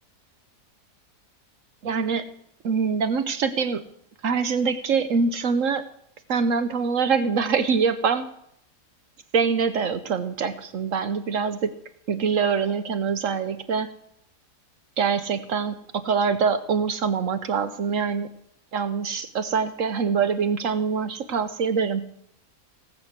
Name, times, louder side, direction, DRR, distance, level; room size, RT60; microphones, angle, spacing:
voice 1, 1.8-2.3 2.6-3.8 4.2-5.8 6.3-8.3 9.3-11.7 12.1-13.9 15.0-18.3 18.7-22.0, right 5 dB, 60° right, 11 dB, 1.0 m, -24 dB
17.5 x 6.2 x 8.0 m, 0.71 s
omnidirectional pair, 1.7 m